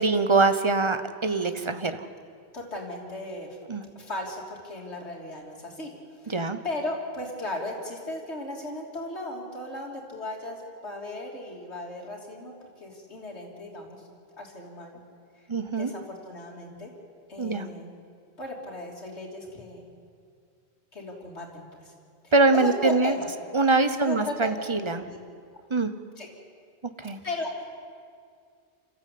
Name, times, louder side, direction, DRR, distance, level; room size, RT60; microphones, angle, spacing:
voice 1, 0.0-2.0 3.7-3.8 6.3-6.6 15.5-15.9 17.4-17.7 22.3-23.1 23.5-25.0 25.7-25.9 26.8-27.2, right 3 dB, 30° right, 10 dB, 1.0 m, -23 dB
voice 2, 2.5-3.6 4.0-5.9 6.2-14.0 14.4-15.0 15.7-16.9 17.3-17.9 18.4-19.8 20.9-21.9 22.2-23.3 24.0-24.3 24.9-25.2 26.2-26.3 27.2-27.6, left 2 dB, 90° left, -1 dB, 3.6 m, -36 dB
28.0 x 14.5 x 8.6 m, 2.2 s
omnidirectional pair, 1.1 m